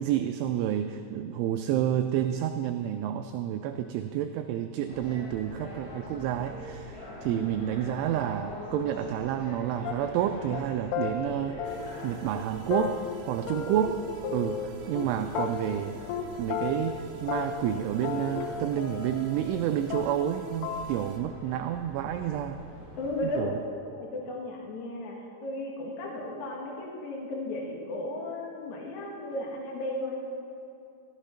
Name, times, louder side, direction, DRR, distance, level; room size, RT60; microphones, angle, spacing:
voice 1, 0.0-11.8 12.0-13.0 13.3-14.0 14.3-16.0 16.4-22.6 23.3-23.6, right 10 dB, 85° right, 7 dB, 2.8 m, -29 dB
sound 1, 4.9-23.3, left 1 dB, 40° left, 4.9 m, -45 dB
voice 2, 7.2-7.7 23.0-23.5 23.9-30.1, left 1 dB, 70° left, -1 dB, 1.8 m, -35 dB
sound 2, 9.9-10.2 10.5-10.6 10.9-11.1 11.6-12.1 12.4-12.5 12.7-14.0 14.2-15.1 15.4-15.8 16.1-16.3 16.5-17.0 17.3-19.6 19.9-20.3 20.6-20.9, left 8 dB, 85° left, 3.7 m, -33 dB
sound 3, 11.6-21.2, right 2 dB, 65° right, 3.7 m, -47 dB
15.0 x 14.0 x 5.7 m, 2.5 s
omnidirectional pair, 5.9 m